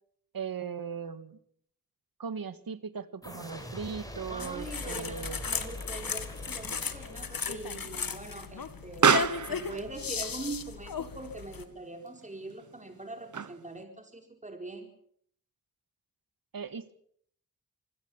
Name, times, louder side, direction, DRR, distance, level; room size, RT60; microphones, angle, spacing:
voice 1, 0.3-1.4 2.2-5.4 16.5-16.9, right 6 dB, 75° right, 13 dB, 1.7 m, -38 dB
sound 1, 3.2-7.9, equal, 10° left, 6.3 m, -43 dB
voice 2, 4.3-14.9, right 2 dB, 20° right, 4 dB, 4.4 m, -42 dB
sound 2, 4.4-11.6, left 6 dB, 70° left, 2.0 m, -36 dB
Explosion, 4.9-13.8, right 6 dB, 55° right, 1.1 m, -33 dB
25.5 x 17.0 x 7.2 m, 0.64 s
wide cardioid pair, 75°, 36 cm